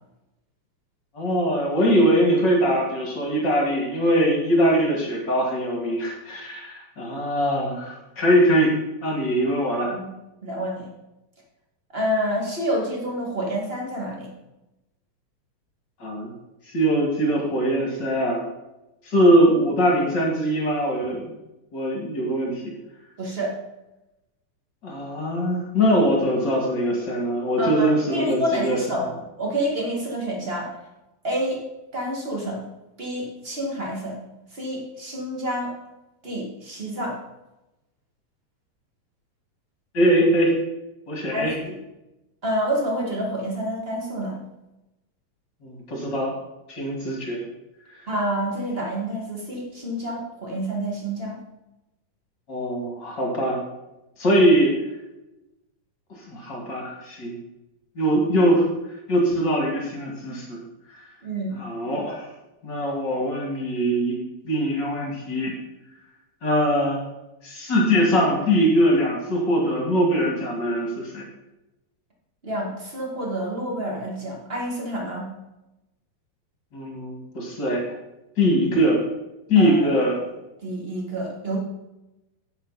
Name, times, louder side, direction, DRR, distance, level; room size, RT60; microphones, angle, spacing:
voice 1, 1.1-8.7 9.0-9.9 16.0-16.3 16.7-18.4 19.0-21.3 21.7-22.6 24.8-29.0 39.9-40.6 41.1-41.5 45.6-46.3 46.7-47.4 52.5-53.6 54.2-54.7 56.2-57.4 58.0-58.7 59.1-60.6 60.9-61.0 61.6-62.3 62.6-64.2 64.4-65.5 66.4-67.1 67.4-71.2 76.7-78.0 78.4-79.0 79.5-80.2, equal, 35° left, 0 dB, 2.1 m, -22 dB
voice 2, 10.4-10.9 11.9-14.3 23.2-23.5 27.6-30.8 31.2-31.6 31.9-32.6 33.0-34.2 34.5-35.7 36.2-37.2 41.3-41.8 42.4-44.4 48.1-51.3 61.2-61.6 72.4-75.3 79.5-80.0 80.6-81.6, equal, 25° right, -2 dB, 1.3 m, -28 dB
10.0 x 8.5 x 4.1 m, 0.96 s
omnidirectional pair, 4.1 m